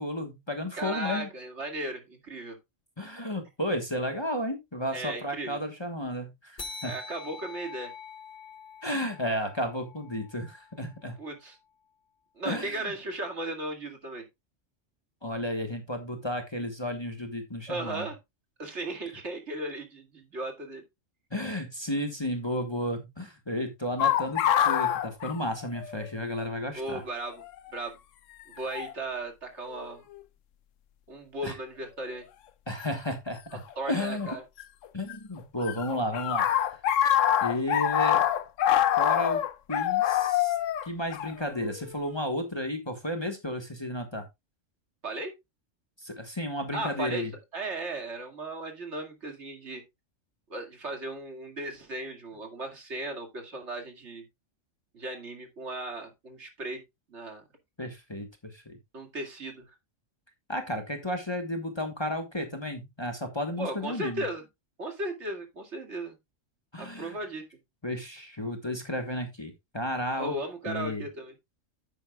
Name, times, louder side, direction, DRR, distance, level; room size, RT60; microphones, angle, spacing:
voice 1, 0.0-1.3 3.0-6.9 8.8-11.2 12.4-12.8 15.2-18.1 21.3-27.0 31.4-31.5 32.7-34.3 34.9-36.8 37.4-38.2 39.0-39.4 39.7-40.6 40.8-44.2 46.0-47.3 57.8-58.8 60.5-64.2 66.7-67.2 67.8-70.4 70.7-71.0, left 1 dB, 20° left, 1.4 m, -33 dB
voice 2, 0.7-2.6 4.9-5.6 6.8-7.9 11.2-11.6 12.4-14.2 17.7-18.2 18.6-20.8 26.7-27.4 27.7-28.0 28.6-30.1 31.1-32.2 33.8-34.4 45.0-45.3 46.7-47.3 47.5-49.8 50.5-54.2 54.9-56.8 57.1-57.4 58.9-59.7 63.6-64.4 64.8-66.2 66.8-67.4 70.2-71.3, right 2 dB, 65° right, 2.5 m, -36 dB
sound 1, 6.6-11.5, left 4 dB, 40° left, 1.3 m, -45 dB
sound 2, 24.0-26.1 26.4-26.5 27.4-27.7 28.7-28.9 29.7-30.2 32.8-32.9 34.2-35.1 35.4-42.0, left 11 dB, 90° left, 1.0 m, -26 dB
10.0 x 9.0 x 2.3 m
omnidirectional pair, 1.3 m